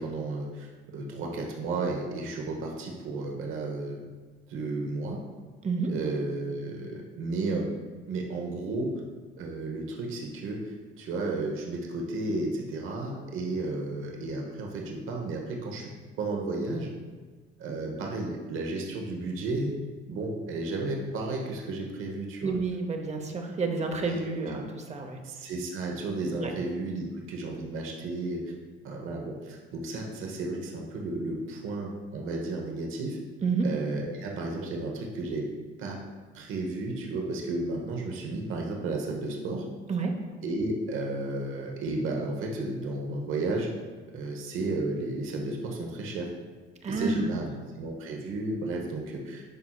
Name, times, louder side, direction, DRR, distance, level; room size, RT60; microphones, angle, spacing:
voice 1, 0.0-4.1 4.5-5.2 5.9-7.7 8.1-8.9 9.4-16.9 17.6-19.8 20.1-22.5 24.1-24.2 25.2-28.5 28.8-33.2 33.6-35.5 35.8-36.0 36.3-39.6 40.4-43.7 44.1-46.3 46.9-47.4 47.8-49.4, right 2 dB, 75° right, 0 dB, 1.0 m, -33 dB
voice 2, 22.4-25.2 26.4-26.5 33.4-33.7 39.9-40.1 46.8-47.4, right 4 dB, 35° right, 4 dB, 0.8 m, -29 dB
10.5 x 4.3 x 2.3 m, 1.4 s
cardioid pair, 110°, 21 cm